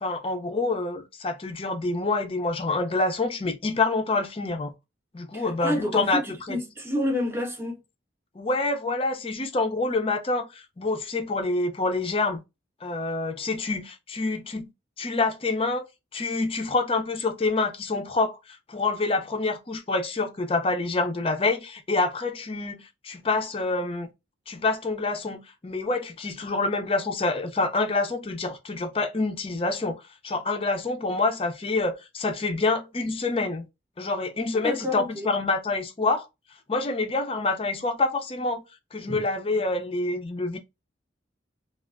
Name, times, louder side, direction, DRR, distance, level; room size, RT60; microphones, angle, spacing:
voice 1, 0.0-4.7 5.1-6.6 8.3-12.4 12.8-14.7 15.0-15.8 16.1-24.1 24.5-33.7 34.0-36.3 36.7-38.6 38.9-40.6, left 3 dB, 30° left, 0.5 m, -27 dB
voice 2, 5.3-7.8 34.6-35.3 39.1-39.2, left 1 dB, 10° right, 0.7 m, -29 dB
3.2 x 2.4 x 2.4 m
head